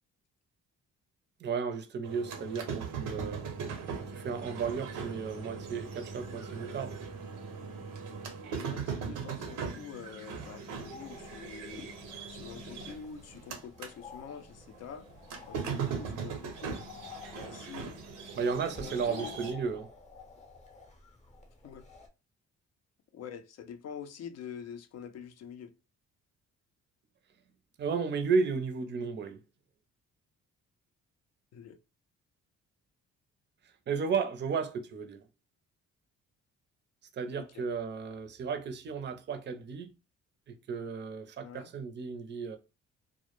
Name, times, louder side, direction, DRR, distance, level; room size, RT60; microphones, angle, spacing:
voice 1, 1.4-3.4 4.1-7.0 18.3-19.9 27.8-29.4 33.9-35.2 37.1-39.9 40.5-42.6, right 5 dB, 35° right, 0.5 m, -33 dB
sound 1, 2.0-14.0 14.3-19.5, right 6 dB, 85° right, 0.7 m, -40 dB
voice 2, 8.5-12.0 12.3-15.1 15.4-16.9 17.3-18.0 18.5-19.3 21.6-21.8 23.1-25.7 31.5-31.8 37.3-37.7 41.4-41.7, left 8 dB, 60° left, 0.5 m, -46 dB
sound 2, 10.8-22.1, left 4 dB, 25° left, 0.6 m, -51 dB
2.1 x 2.0 x 2.9 m
cardioid pair, 90°, 30 cm